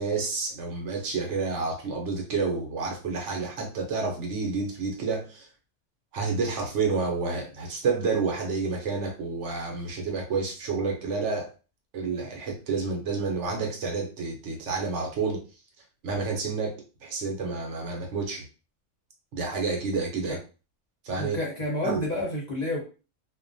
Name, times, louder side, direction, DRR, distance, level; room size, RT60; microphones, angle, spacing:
voice 1, 0.0-5.5 6.1-11.5 11.9-15.4 16.0-18.4 19.3-20.4 21.0-21.4 21.8-22.0, right 4 dB, 70° right, 0 dB, 1.0 m, -29 dB
voice 2, 21.2-22.9, left 1 dB, 40° left, -4 dB, 0.8 m, -29 dB
2.4 x 2.1 x 2.6 m, 0.34 s
omnidirectional pair, 1.3 m